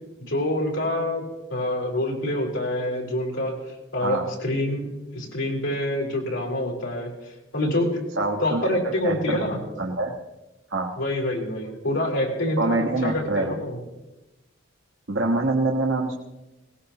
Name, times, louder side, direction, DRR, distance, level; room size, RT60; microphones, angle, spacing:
voice 1, 0.3-1.2 1.5-3.6 3.9-7.1 7.5-8.0 8.4-9.6 11.0-13.8, left 1 dB, 80° left, -2 dB, 4.2 m, -26 dB
voice 2, 8.2-10.1 10.7-10.9 12.6-13.6 15.1-16.2, right 2 dB, 80° right, -1 dB, 1.4 m, -25 dB
21.5 x 18.5 x 3.0 m, 1.0 s
head